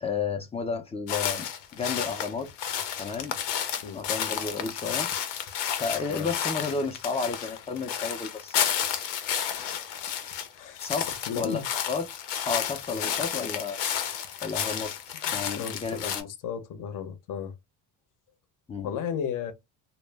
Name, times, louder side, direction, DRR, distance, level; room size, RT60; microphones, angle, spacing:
voice 1, 0.0-1.5 1.7-2.5 3.0-3.3 3.9-5.1 5.8-8.6 10.8-11.6 11.9-12.1 12.4-13.8 14.4-14.9 15.3-16.3 18.7-18.9, left 4 dB, 15° left, 0.4 m, -32 dB
sound 1, 1.1-10.5 10.8-16.2, left 9 dB, 75° left, 0.7 m, -31 dB
voice 2, 10.5-10.9 11.3-11.6 15.3-17.5 18.8-19.5, left 8 dB, 50° left, 0.7 m, -34 dB
2.1 x 2.0 x 3.2 m
cardioid pair, 115°, 42 cm